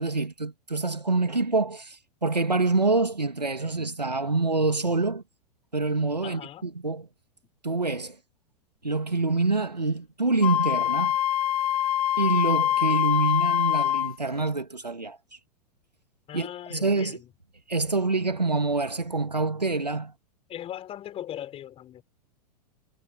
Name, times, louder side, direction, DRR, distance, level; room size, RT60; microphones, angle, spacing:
voice 1, 0.0-5.2 5.7-7.1 7.6-8.2 8.8-11.2 12.2-15.2 16.3-17.2 17.7-20.1, right 3 dB, 90° right, 2.5 m, -26 dB
voice 2, 6.2-6.6 16.3-17.3 20.5-22.0, left 11 dB, 30° left, 6.4 m, -39 dB
Wind instrument woodwind instrument, 10.4-14.1, left 11 dB, 65° left, 1.0 m, -24 dB
figure-of-eight pair, 95°, 21 cm